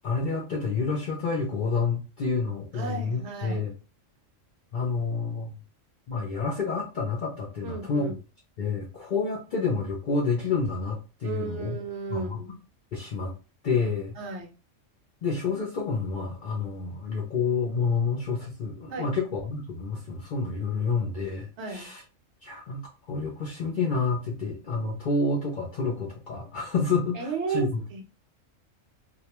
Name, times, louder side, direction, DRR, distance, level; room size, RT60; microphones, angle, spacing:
voice 1, 0.0-3.7 4.7-5.6 6.1-8.1 8.6-11.8 12.1-12.4 12.9-13.3 13.6-14.2 15.2-22.0 22.4-22.8 23.1-27.8, left 4 dB, 60° left, 0.5 m, -29 dB
voice 2, 2.7-3.6 7.6-8.2 11.2-12.5 14.2-14.5 18.9-19.1 21.6-21.9 27.1-28.0, right 4 dB, 70° right, 0.8 m, -34 dB
2.3 x 2.2 x 2.9 m
omnidirectional pair, 1.3 m